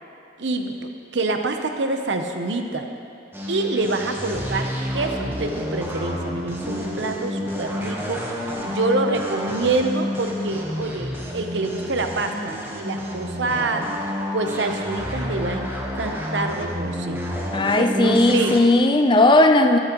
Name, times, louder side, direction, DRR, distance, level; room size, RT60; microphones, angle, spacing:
voice 1, 0.4-2.9 3.5-8.2 8.6-13.8 14.3-15.7 15.9-17.2 17.8-18.5, right 3 dB, 75° right, 5 dB, 0.8 m, -26 dB
sound 1, 3.3-18.6, left 1 dB, 10° right, 1.1 m, -29 dB
voice 2, 17.5-19.8, left 2 dB, 25° left, 6 dB, 0.5 m, -16 dB
13.0 x 12.0 x 3.0 m, 2.6 s
head